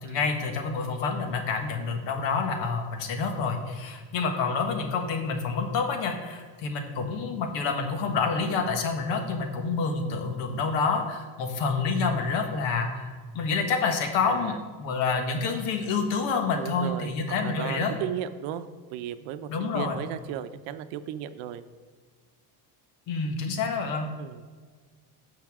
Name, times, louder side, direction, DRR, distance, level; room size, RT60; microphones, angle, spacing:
voice 1, 0.0-13.1 13.3-17.9 19.5-20.0 23.1-24.1, left 4 dB, 80° left, 4 dB, 1.6 m, -28 dB
voice 2, 14.3-14.6 16.6-17.1 17.4-21.6 24.2-24.4, right 10 dB, 90° right, 12 dB, 0.7 m, -35 dB
15.0 x 5.6 x 3.6 m, 1.5 s
cardioid pair, 150°, 44 cm